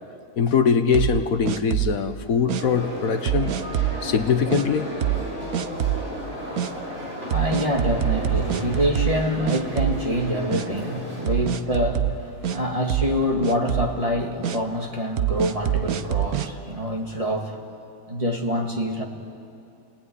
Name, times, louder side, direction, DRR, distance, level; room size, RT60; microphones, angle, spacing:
voice 1, 0.4-3.6 4.0-4.9, left 6 dB, 70° left, 1.3 m, -22 dB
sound 1, 0.9-2.0 2.5-2.6 3.3-4.0 4.5-4.6 5.0-5.3 5.5-6.1 6.6-6.7 7.3-9.2 9.5-10.2 10.5-10.7 11.3-12.6 12.9-13.2 13.4-13.9 14.4-14.6 15.2-16.5, right 12 dB, 75° right, 1.3 m, -25 dB
sound 2, 2.6-11.3, equal, 50° right, 6.1 m, -34 dB
voice 2, 6.4-17.6 18.1-19.0, equal, 20° right, 2.3 m, -26 dB
29.0 x 19.5 x 9.8 m
omnidirectional pair, 1.6 m